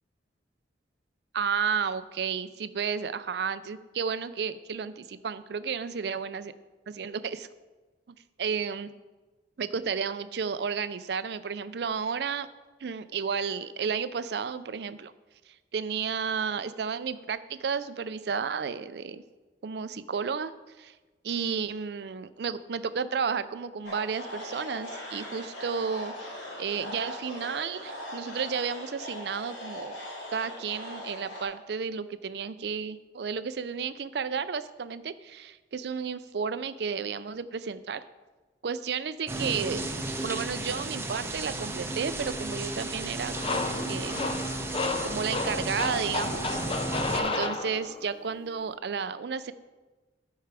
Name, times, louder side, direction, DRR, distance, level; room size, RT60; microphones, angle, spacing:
voice 1, 1.3-6.5 6.9-7.5 8.4-8.9 9.6-12.5 12.8-15.1 15.5-19.2 19.6-20.5 20.8-20.9 21.2-26.3 26.6-30.0 30.3-38.0 38.6-39.8 40.2-43.4 43.9-44.2 45.0-46.6 47.1-49.5, right 6 dB, 65° right, 14 dB, 0.4 m, -32 dB
sound 1, 23.8-31.4, left 1 dB, 80° left, 3.1 m, -40 dB
sound 2, 39.3-47.2, right 2 dB, 15° right, 0.7 m, -34 dB
sound 3, 43.4-48.2, left 3 dB, 30° left, 0.5 m, -32 dB
14.0 x 4.7 x 4.7 m, 1.2 s
head